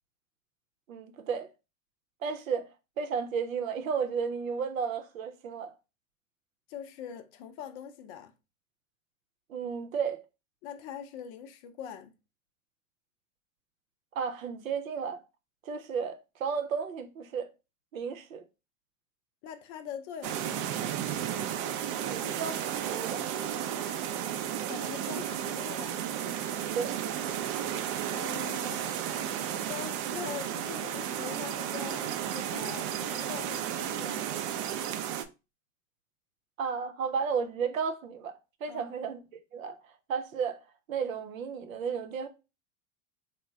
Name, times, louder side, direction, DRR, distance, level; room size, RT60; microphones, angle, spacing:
voice 1, 0.9-1.5 2.2-2.7 3.0-5.7 9.5-10.2 14.1-15.2 15.6-17.5 17.9-18.4 22.1-22.6 22.9-23.2 26.7-27.0 36.6-38.3 38.6-39.2 39.5-40.6 40.9-42.3, right 6 dB, 85° right, 0.7 m, -33 dB
voice 2, 6.7-8.3 10.6-12.1 19.4-20.8 24.7-26.0 28.1-29.3 29.7-34.3 38.7-39.0, left 8 dB, 45° left, 0.6 m, -43 dB
sound 1, 20.2-35.2, right 10 dB, 40° right, 0.4 m, -33 dB
3.1 x 2.1 x 3.5 m
hypercardioid pair, 100°, 39 cm